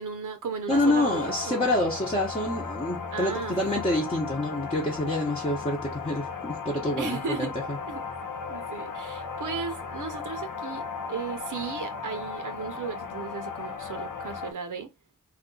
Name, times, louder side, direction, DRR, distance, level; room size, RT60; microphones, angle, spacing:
voice 1, 0.0-1.8 3.1-3.7 7.0-7.5 7.9-8.0 8.5-14.9, right 5 dB, 70° right, 0.7 m, -35 dB
sound 1, 0.7-14.5, left 5 dB, 90° left, 0.7 m, -36 dB
voice 2, 0.7-7.8, left 1 dB, 20° left, 0.8 m, -27 dB
2.4 x 2.3 x 3.7 m
wide cardioid pair, 85°, 31 cm